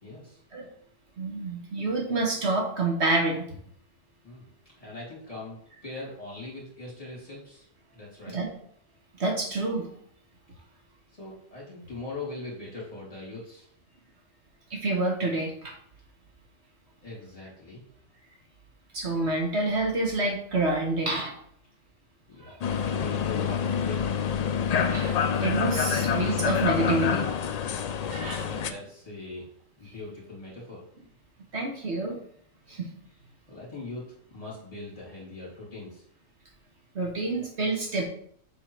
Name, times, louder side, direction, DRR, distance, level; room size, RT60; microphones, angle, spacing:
voice 1, 0.0-0.4 4.2-4.5 4.8-7.7 7.9-8.4 11.1-13.7 17.0-17.8 22.3-24.1 28.1-29.5 29.8-30.8 32.7-32.8 33.5-36.0, left 2 dB, 30° left, -6 dB, 2.8 m, -41 dB
voice 2, 1.2-3.4 8.3-8.5 9.2-9.9 14.7-15.7 18.9-21.3 22.4-22.6 24.8-27.3 28.0-28.4 31.5-32.2 32.7-32.9 36.9-38.0, right 2 dB, 60° right, 0 dB, 1.4 m, -28 dB
sound 1, 22.6-28.7, left 7 dB, 85° left, 0.3 m, -27 dB
7.2 x 3.7 x 4.5 m, 0.64 s
omnidirectional pair, 1.3 m